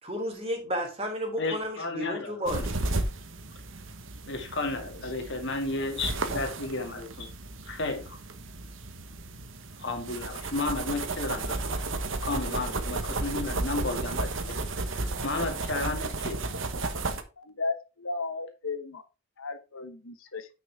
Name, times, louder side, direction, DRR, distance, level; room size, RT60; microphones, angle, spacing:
voice 1, 0.0-2.8, equal, 30° right, 3.2 m, -32 dB
voice 2, 1.4-2.7 4.3-7.3 7.7-8.2 9.8-11.8 12.2-14.5 14.9-16.4, left 3 dB, 60° left, 2.3 m, -33 dB
sound 1, 2.5-17.2, right 2 dB, 65° right, 1.2 m, -33 dB
voice 3, 17.4-19.0 19.4-20.5, left 3 dB, 85° left, 1.0 m, -35 dB
9.3 x 6.1 x 3.5 m
head